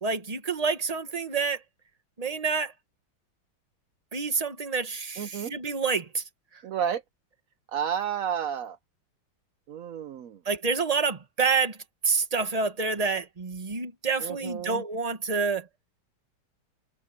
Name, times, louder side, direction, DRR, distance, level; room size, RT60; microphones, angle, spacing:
voice 1, 0.0-1.6 2.2-2.7 4.1-6.2 10.4-11.8 12.0-15.7, right 4 dB, 20° right, 1.2 m, -28 dB
voice 2, 5.2-5.5 6.6-7.0 7.7-8.8 9.7-10.4 14.2-14.8, right 8 dB, 75° right, 0.7 m, -31 dB
omnidirectional pair, 2.3 m